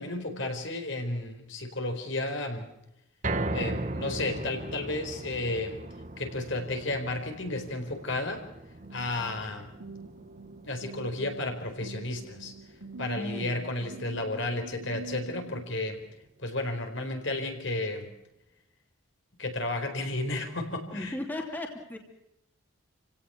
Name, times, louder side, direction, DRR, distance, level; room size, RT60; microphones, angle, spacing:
voice 1, 0.0-2.7 3.5-5.8 6.2-8.4 8.9-9.7 10.6-12.5 13.0-16.0 16.4-18.1 19.4-21.1, left 2 dB, 60° left, 5 dB, 4.4 m, -32 dB
sound 1, 3.2-15.5 15.9-16.0 16.4-16.5, right 2 dB, 35° right, 1.4 m, -39 dB
sound 2, 8.8-15.7, right 3 dB, 80° right, 3.3 m, -45 dB
voice 2, 13.1-13.6 20.9-22.0, left 1 dB, 10° left, 2 dB, 2.8 m, -36 dB
29.5 x 17.5 x 5.9 m, 0.84 s
head